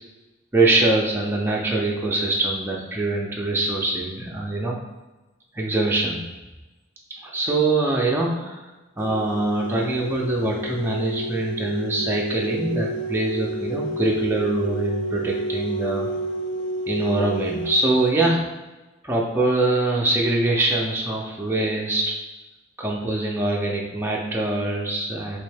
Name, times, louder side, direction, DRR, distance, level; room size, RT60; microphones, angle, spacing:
voice 1, 0.5-4.8 5.5-6.3 7.1-16.1 16.9-18.5 19.0-22.4 22.8-25.4, right 2 dB, 10° right, -3 dB, 0.5 m, -23 dB
sound 1, 9.0-18.1, right 1 dB, 65° left, 0.5 m, -30 dB
3.4 x 3.2 x 3.3 m, 1.1 s
head